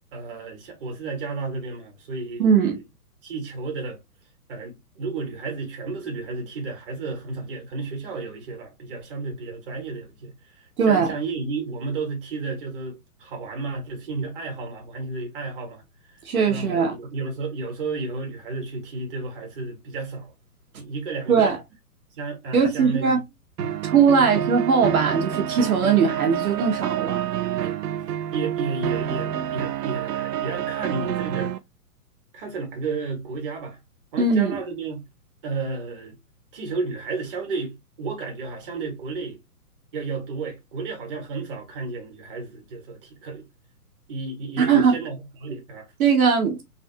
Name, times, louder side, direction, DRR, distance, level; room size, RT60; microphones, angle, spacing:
voice 1, 0.1-2.8 3.2-4.0 4.5-15.8 16.5-20.3 20.8-21.6 22.2-23.1 23.6-23.8 24.2-24.5 27.6-27.8 28.1-31.6 32.3-33.8 34.1-35.0 35.4-36.2 36.5-39.4 39.9-43.4 44.1-45.9, right 3 dB, 35° right, 1.2 m, -32 dB
voice 2, 2.4-2.8 10.8-11.1 16.2-16.9 21.3-21.6 22.5-23.2 23.8-27.2 34.2-34.6 44.6-44.9 46.0-46.7, right 6 dB, 65° right, 1.0 m, -20 dB
sound 1, 23.6-31.6, right 11 dB, 90° right, 0.6 m, -28 dB
3.3 x 2.3 x 2.7 m
hypercardioid pair, 165°, 46 cm